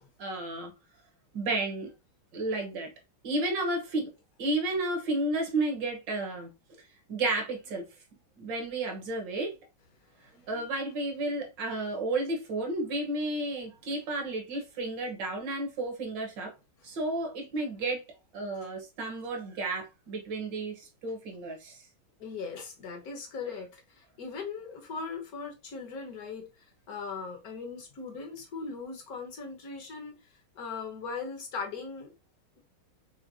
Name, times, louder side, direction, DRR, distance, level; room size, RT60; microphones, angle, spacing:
voice 1, 0.2-0.7 1.3-1.9 2.3-2.9 3.2-4.1 4.4-6.8 7.1-7.8 8.4-9.5 10.5-16.5 16.8-18.0 18.3-21.8, right 2 dB, 65° right, 1.7 m, -32 dB
voice 2, 10.2-10.5 16.8-16.9 22.2-32.1, left 4 dB, 55° left, 1.3 m, -39 dB
6.0 x 2.1 x 2.7 m
omnidirectional pair, 2.3 m